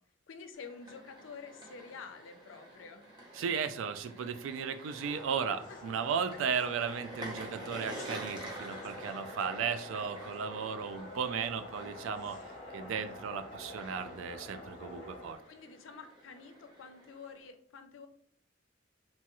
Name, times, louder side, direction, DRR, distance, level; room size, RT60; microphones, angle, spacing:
voice 1, 0.3-3.1 5.5-5.6 6.3-6.4 15.5-18.1, left 5 dB, 75° left, 7 dB, 0.4 m, -49 dB
sound 1, 0.5-17.5, right 1 dB, 20° right, 0.7 m, -49 dB
voice 2, 3.4-12.4 12.7-15.4, right 6 dB, 80° right, 10 dB, 0.3 m, -35 dB
sound 2, 5.0-15.4, left 1 dB, 40° left, 0.7 m, -47 dB
3.0 x 2.3 x 2.9 m, 0.64 s
head